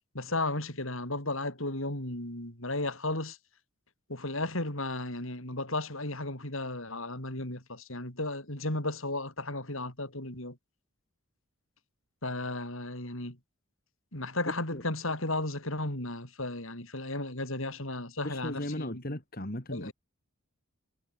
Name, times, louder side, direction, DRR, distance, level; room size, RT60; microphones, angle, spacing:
voice 1, 0.1-3.4 4.1-10.6 12.2-13.4 14.1-19.0 19.7-19.9, left 2 dB, 65° left, 6.1 m, -34 dB
voice 2, 18.2-19.9, left 1 dB, 40° left, 3.1 m, -36 dB
head